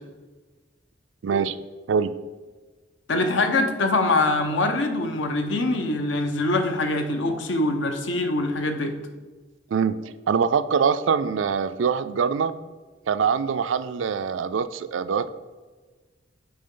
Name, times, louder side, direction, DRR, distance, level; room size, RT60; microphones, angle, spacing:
voice 1, 1.2-1.6 1.9-2.1 9.7-12.5 13.1-15.4, right 6 dB, 85° right, 13 dB, 0.4 m, -24 dB
voice 2, 3.1-9.0, left 2 dB, 75° left, 6 dB, 0.8 m, -23 dB
8.5 x 4.7 x 3.8 m, 1.3 s
head